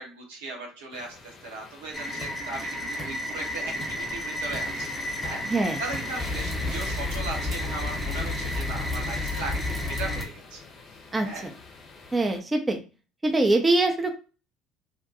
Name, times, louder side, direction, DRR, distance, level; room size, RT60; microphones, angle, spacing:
voice 1, 0.0-4.9 5.2-10.6 11.2-11.5, right 2 dB, 75° right, -1 dB, 0.8 m, -38 dB
sound 1, 0.9-12.4, left 4 dB, 45° left, 0.6 m, -44 dB
sound 2, 1.9-10.2, left 1 dB, 10° left, 0.9 m, -31 dB
voice 2, 5.5-5.8 11.1-11.3 12.1-12.8 13.2-14.1, right 2 dB, 20° right, 5 dB, 0.5 m, -23 dB
2.6 x 2.2 x 2.5 m, 0.34 s
hypercardioid pair, 60°, 0 cm